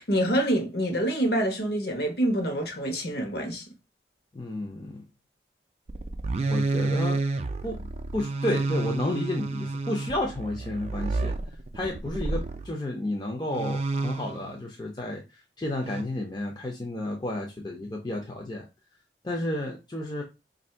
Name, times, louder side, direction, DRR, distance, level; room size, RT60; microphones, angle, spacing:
voice 1, 0.0-3.6, right 1 dB, 65° left, 1.0 m, -26 dB
voice 2, 4.3-5.0 6.5-7.2 7.6-7.9 8.1-11.3 11.7-15.2 15.6-18.6 19.2-20.2, left 1 dB, 25° left, 0.5 m, -31 dB
sound 1, 5.9-12.7 13.5-14.5 15.8-16.0, right 3 dB, 35° right, 0.3 m, -30 dB
3.1 x 2.6 x 4.3 m
head